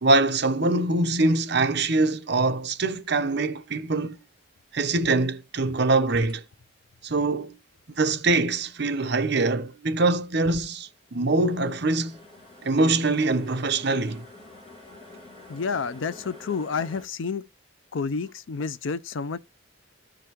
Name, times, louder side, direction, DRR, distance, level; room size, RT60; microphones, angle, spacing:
voice 1, 0.0-4.2 4.7-6.4 7.0-7.5 8.0-12.2 12.6-14.3, right 2 dB, 55° right, 0.8 m, -23 dB
sound 1, 6.1-6.3 10.9-17.1, left 2 dB, 30° left, 3.0 m, -48 dB
voice 2, 15.5-17.4 17.9-19.4, left 5 dB, 70° left, 0.5 m, -29 dB
14.0 x 5.0 x 2.9 m
head